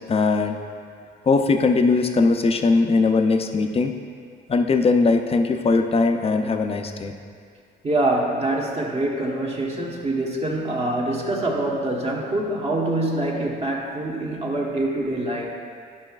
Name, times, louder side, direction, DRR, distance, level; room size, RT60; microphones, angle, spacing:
voice 1, 0.1-0.6 1.2-3.9 4.5-7.1, left 3 dB, 30° left, 5 dB, 0.5 m, -20 dB
voice 2, 7.8-15.5, right 1 dB, 30° right, -1 dB, 1.2 m, -25 dB
11.5 x 5.7 x 2.4 m, 2.2 s
cardioid pair, 90°, 20 cm